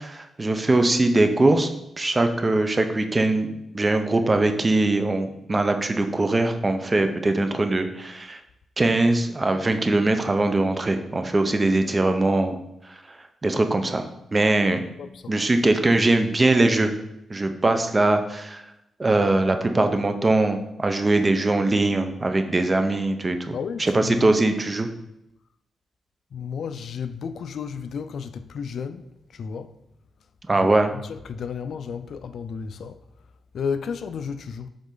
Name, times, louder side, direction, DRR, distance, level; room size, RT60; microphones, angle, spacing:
voice 1, 0.0-1.7 2.0-8.4 8.8-12.6 12.9-13.0 13.4-14.9 15.3-16.9 17.3-18.6 19.0-23.5 23.8-24.9 30.5-30.9, right 2 dB, 25° right, 0.7 m, -21 dB
voice 2, 15.0-15.3 23.5-24.4 26.3-29.8 30.5-33.0 33.5-34.7, left 6 dB, 65° left, 0.4 m, -33 dB
7.3 x 3.9 x 3.8 m
cardioid pair, 95°, 0 cm